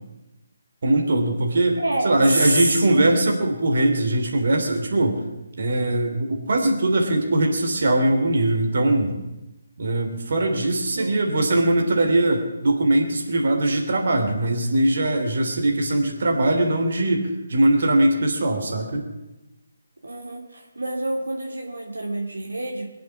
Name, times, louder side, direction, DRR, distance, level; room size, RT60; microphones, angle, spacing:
voice 1, 0.8-5.2 5.6-9.2 9.8-19.0, right 1 dB, 60° right, 3 dB, 3.3 m, -21 dB
voice 2, 1.8-3.2 10.9-11.2 20.0-22.9, right 1 dB, 85° right, 0 dB, 3.0 m, -27 dB
23.0 x 7.7 x 7.4 m, 1.0 s
figure-of-eight pair, 150°, 0 cm